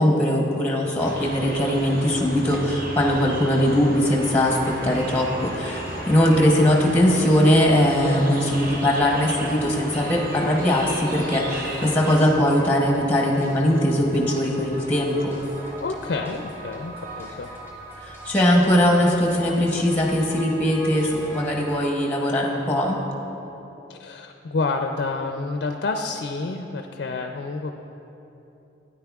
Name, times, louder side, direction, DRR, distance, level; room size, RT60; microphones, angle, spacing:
voice 1, 0.0-15.4 18.0-23.0, left 1 dB, 10° left, -1 dB, 0.8 m, -20 dB
sound 1, 1.0-12.3, right 1 dB, 50° right, 1.0 m, -34 dB
sound 2, 4.3-21.8, right 1 dB, 15° right, 1.7 m, -41 dB
voice 2, 6.3-6.7 15.8-17.5 23.9-27.7, left 3 dB, 60° left, 4 dB, 0.4 m, -29 dB
13.0 x 9.4 x 2.3 m, 3.0 s
head